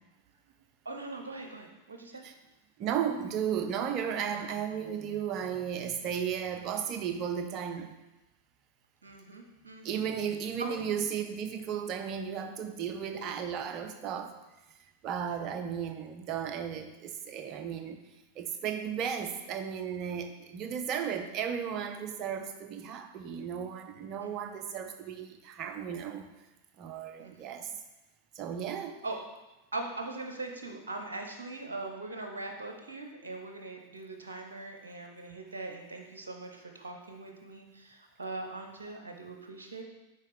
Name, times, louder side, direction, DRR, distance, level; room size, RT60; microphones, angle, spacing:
voice 1, 0.8-2.2 9.0-10.0 10.6-10.8 15.3-15.4 24.2-24.6 27.2-27.6 29.0-29.2 29.7-39.8, right 2 dB, 70° right, 3 dB, 0.8 m, -41 dB
voice 2, 2.8-8.0 9.8-14.4 15.0-18.0 18.4-26.3 26.8-27.7 28.4-29.0, right 8 dB, 35° right, 7 dB, 0.6 m, -34 dB
6.5 x 4.8 x 3.4 m, 1.0 s
figure-of-eight pair, 90°, 0 cm